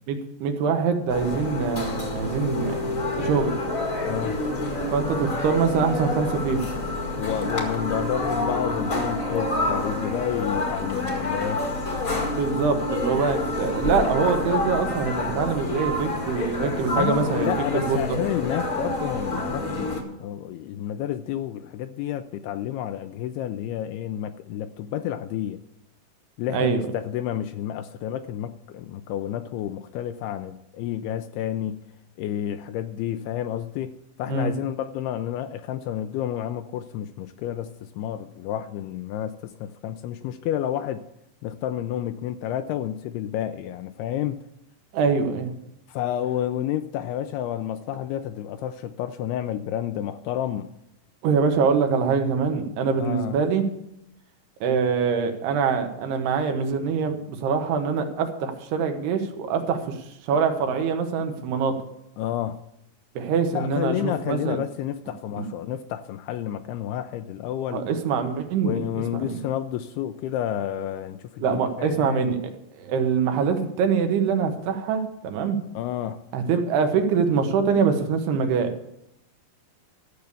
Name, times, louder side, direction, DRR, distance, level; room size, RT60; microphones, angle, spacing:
voice 1, 0.1-2.8 3.1-3.5 4.9-6.6 12.4-18.2 26.5-26.8 34.3-34.5 44.9-45.5 51.2-53.6 54.6-60.0 60.2-61.8 63.2-64.6 65.4-65.5 67.7-69.3 71.4-72.4 72.8-75.6 76.3-78.7, right 6 dB, 80° right, 5 dB, 3.1 m, -24 dB
sound 1, 1.1-20.0, left 2 dB, 40° left, 1.1 m, -28 dB
voice 2, 4.0-4.4 7.2-11.7 16.9-19.9 20.2-25.6 26.4-31.8 32.2-33.9 34.2-41.0 41.4-44.4 45.9-50.7 53.0-53.4 62.2-62.6 63.5-67.8 68.6-72.3 75.7-76.2, left 11 dB, 80° left, 9 dB, 2.4 m, -30 dB
13.0 x 6.8 x 6.9 m, 0.81 s
omnidirectional pair, 4.8 m